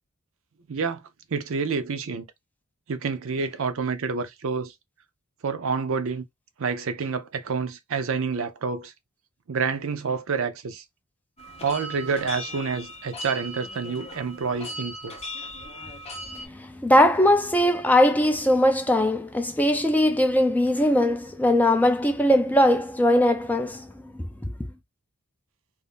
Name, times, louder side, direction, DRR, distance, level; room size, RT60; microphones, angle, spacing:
voice 1, 0.7-1.0 1.3-2.3 2.9-4.7 5.4-6.3 6.6-8.9 9.5-10.8 11.6-15.1, right 5 dB, 60° right, 0.5 m, -28 dB
sound 1, 11.4-16.4, equal, 30° left, 0.8 m, -38 dB
voice 2, 16.5-23.9 24.1-24.2, left 1 dB, 5° left, 0.4 m, -20 dB
2.6 x 2.5 x 3.5 m
head